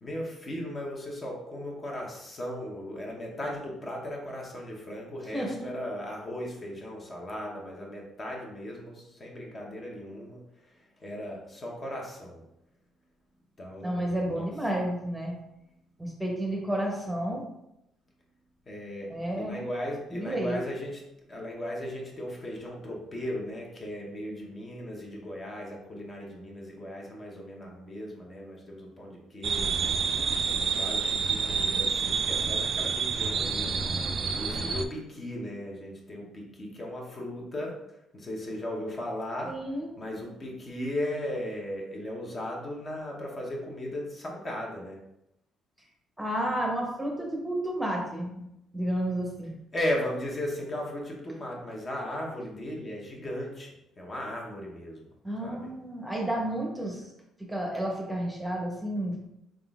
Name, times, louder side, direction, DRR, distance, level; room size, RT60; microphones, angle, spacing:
voice 1, 0.0-10.4 11.0-12.4 13.6-14.4 18.7-21.0 21.3-29.8 30.5-33.8 34.2-37.8 38.1-39.5 40.0-45.0 49.7-53.7 54.0-55.0 55.4-55.7 56.8-56.9, left 1 dB, 30° left, -1 dB, 0.9 m, -36 dB
voice 2, 5.3-5.7 13.8-15.3 16.0-17.4 19.1-19.6 20.1-20.6 39.4-39.9 46.2-48.5 48.7-49.5 55.2-57.0 57.5-59.2, right 1 dB, 5° right, -1 dB, 0.8 m, -31 dB
sound 1, 29.4-34.8, right 5 dB, 45° right, 0.3 m, -28 dB
4.0 x 3.7 x 2.4 m, 0.85 s
cardioid pair, 125°, 0 cm